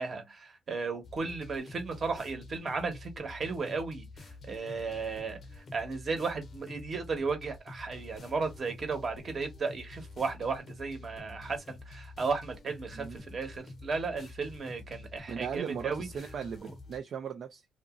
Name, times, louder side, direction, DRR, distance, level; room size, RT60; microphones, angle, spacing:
voice 1, 0.0-16.1, right 4 dB, 45° right, 1.1 m, -35 dB
sound 1, 1.0-17.0, left 3 dB, 50° left, 0.6 m, -48 dB
voice 2, 15.3-17.6, right 7 dB, 60° right, 0.4 m, -38 dB
2.8 x 2.5 x 2.4 m
cardioid pair, 90°, 0 cm